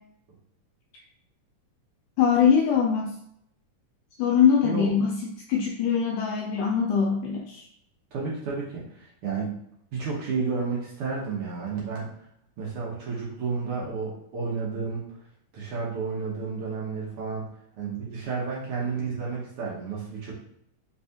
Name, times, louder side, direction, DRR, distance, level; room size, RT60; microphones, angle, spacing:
voice 1, 2.2-3.1 4.2-5.2 5.5-7.7, left 7 dB, 80° left, 0 dB, 1.8 m, -22 dB
voice 2, 8.1-9.5 9.9-12.1 12.6-15.0 15.5-17.5 17.8-20.3, right 4 dB, 70° right, -5 dB, 1.3 m, -31 dB
4.7 x 3.5 x 2.7 m, 0.72 s
omnidirectional pair, 3.9 m